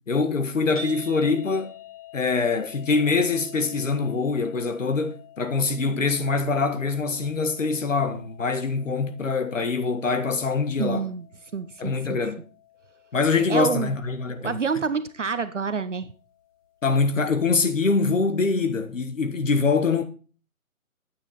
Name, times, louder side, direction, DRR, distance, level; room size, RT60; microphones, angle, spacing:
voice 1, 0.1-1.7 2.1-11.1 11.8-12.4 13.1-14.6 16.8-20.0, left 4 dB, 60° left, 1.6 m, -24 dB
sound 1, 0.8-17.0, left 3 dB, 25° left, 2.1 m, -48 dB
voice 2, 10.8-11.3 11.5-12.2 13.5-13.9 14.4-16.1, right 5 dB, 55° right, 0.8 m, -27 dB
10.5 x 8.9 x 4.1 m
hypercardioid pair, 175°, 43 cm